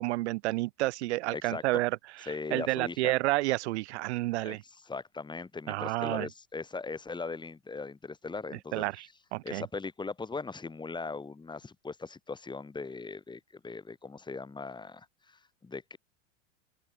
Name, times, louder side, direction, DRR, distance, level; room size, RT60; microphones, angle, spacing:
voice 1, 0.0-2.0 2.5-4.6 5.7-6.3 8.7-9.6, right 19 dB, 60° right, 3.6 m, -30 dB
voice 2, 1.3-1.6 2.2-3.1 4.4-8.8 9.4-16.0, left 4 dB, 10° left, 5.1 m, -39 dB
open air
hypercardioid pair, 110°, 37 cm